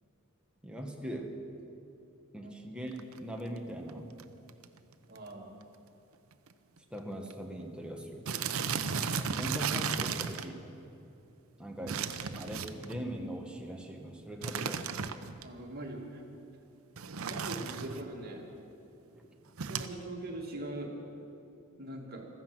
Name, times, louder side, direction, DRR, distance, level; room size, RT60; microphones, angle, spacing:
voice 1, 0.6-1.4 2.3-4.1 6.9-8.5 9.1-10.6 11.5-14.9 19.1-19.2, equal, 5° right, 1 dB, 1.5 m, -41 dB
sound 1, 2.9-3.2 3.9-4.0 4.2-4.3 4.5-4.8 5.2-5.3 5.6-5.7 6.5-6.6 6.8-7.0 7.3-7.4 8.3-10.5 11.9-13.0 14.4-15.4 17.0-18.0 19.6-19.9, right 6 dB, 85° right, 0.7 m, -35 dB
voice 2, 5.1-5.5 15.4-16.2 17.2-18.5 19.7-20.9 21.8-22.3, right 1 dB, 45° right, 0 dB, 2.2 m, -41 dB
15.5 x 14.0 x 6.1 m, 2.7 s
head